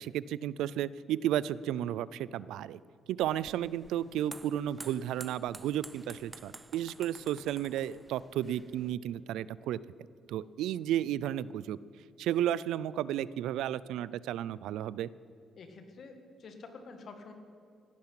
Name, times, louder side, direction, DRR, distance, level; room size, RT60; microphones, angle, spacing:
voice 1, 0.0-2.8 3.1-9.8 10.3-11.8 12.2-15.1, right 11 dB, 85° right, 19 dB, 0.3 m, -33 dB
sound 1, 3.2-8.9, right 2 dB, 20° right, 0.5 m, -51 dB
voice 2, 15.6-17.3, left 4 dB, 55° left, 6 dB, 2.0 m, -48 dB
17.0 x 12.0 x 5.8 m, 2.4 s
cardioid pair, 90°, 0 cm